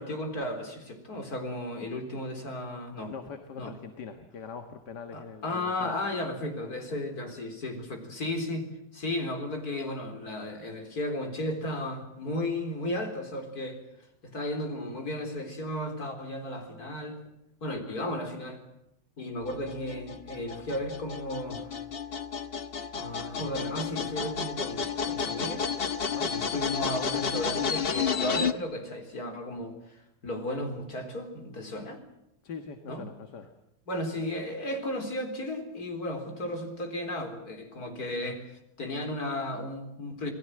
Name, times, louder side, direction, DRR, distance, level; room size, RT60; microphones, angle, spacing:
voice 1, 0.0-3.1 3.6-3.7 5.1-8.7 8.9-13.8 14.2-17.2 17.6-18.6 19.2-21.7 22.9-25.7 26.2-30.0 30.2-32.0 32.9-33.0 33.9-38.4 38.8-40.3, left 1 dB, 60° left, 5 dB, 4.5 m, -34 dB
voice 2, 3.1-6.0 26.1-26.3 32.4-33.5, left 6 dB, 75° left, 7 dB, 2.2 m, -42 dB
sound 1, 19.5-28.5, left 6 dB, 40° left, 1.1 m, -31 dB
27.5 x 20.0 x 7.8 m, 0.82 s
omnidirectional pair, 1.8 m